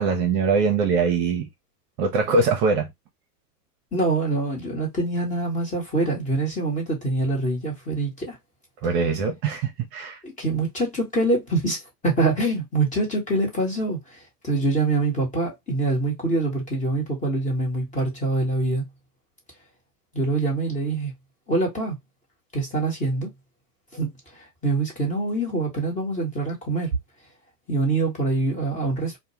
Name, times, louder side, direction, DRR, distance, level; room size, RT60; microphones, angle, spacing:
voice 1, 0.0-1.5 2.0-2.9 8.8-10.2, right 4 dB, 40° right, 0.7 m, -22 dB
voice 2, 3.9-8.4 10.2-14.2 14.4-18.9 20.1-21.1 21.5-22.0 22.5-23.3 23.9-24.1 24.3-26.9 27.7-29.2, right 2 dB, 15° left, 1.1 m, -25 dB
2.3 x 2.2 x 2.8 m
hypercardioid pair, 115°, 48 cm